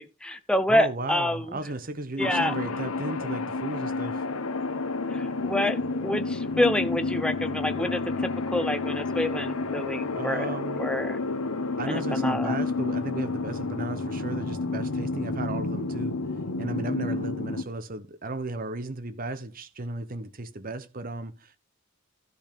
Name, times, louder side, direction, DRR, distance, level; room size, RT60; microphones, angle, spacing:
voice 1, 0.0-1.6 2.2-2.5 5.1-10.5 10.8-11.2 11.9-12.6, left 1 dB, 5° left, 0.8 m, -27 dB
voice 2, 0.7-4.3 10.2-10.8 11.8-16.2 16.6-21.6, right 2 dB, 40° right, 1.0 m, -35 dB
sound 1, 2.2-17.6, left 3 dB, 85° left, 1.0 m, -30 dB
13.0 x 5.4 x 5.2 m
head